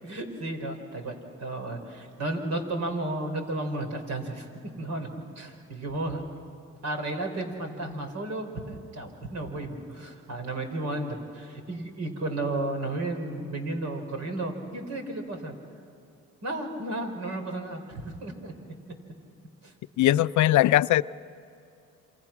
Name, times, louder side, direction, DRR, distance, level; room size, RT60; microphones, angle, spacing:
voice 1, 0.0-4.5 4.8-5.1 5.3-6.2 6.8-15.6 16.4-18.5 19.6-19.7, right 2 dB, 60° right, 4 dB, 4.9 m, -33 dB
voice 2, 20.0-21.0, left 14 dB, 70° left, 15 dB, 0.6 m, -20 dB
28.5 x 27.0 x 6.0 m, 2.6 s
cardioid pair, 90°, 30 cm